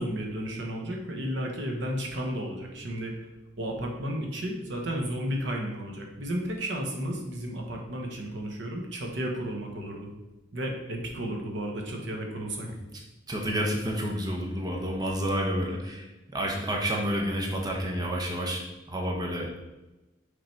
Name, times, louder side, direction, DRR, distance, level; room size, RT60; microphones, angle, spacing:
voice 1, 0.0-3.3 3.6-10.1 10.5-12.7, equal, 70° right, 1 dB, 1.1 m, -33 dB
voice 2, 13.3-19.6, equal, 20° right, -1 dB, 0.9 m, -30 dB
6.2 x 3.9 x 4.4 m, 1.0 s
head